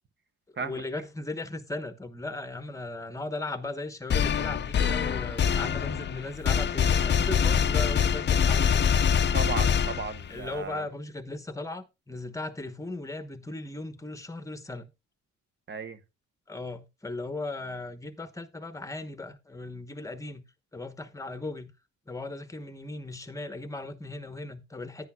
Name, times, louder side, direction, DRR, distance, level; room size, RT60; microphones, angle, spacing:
voice 1, 0.6-8.8 10.3-14.9 16.5-20.4 20.7-21.7 22.1-25.1, left 2 dB, 10° left, 1.0 m, -37 dB
sound 1, 4.1-10.4, left 7 dB, 35° left, 0.6 m, -24 dB
voice 2, 9.3-10.9 15.7-16.0, right 4 dB, 35° right, 1.0 m, -35 dB
10.5 x 9.5 x 2.3 m
cardioid pair, 90°, 30 cm